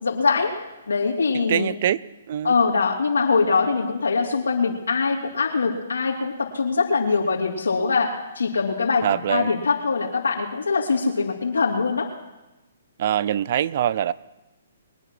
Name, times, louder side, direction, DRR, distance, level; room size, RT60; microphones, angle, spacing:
voice 1, 0.0-0.5 0.9-1.7 2.4-12.1, left 4 dB, 85° left, -2 dB, 2.9 m, -23 dB
voice 2, 1.5-2.5 9.0-9.5 13.0-14.1, right 10 dB, 50° right, 20 dB, 0.5 m, -24 dB
22.5 x 9.2 x 6.1 m, 1.0 s
hypercardioid pair, 135°, 0 cm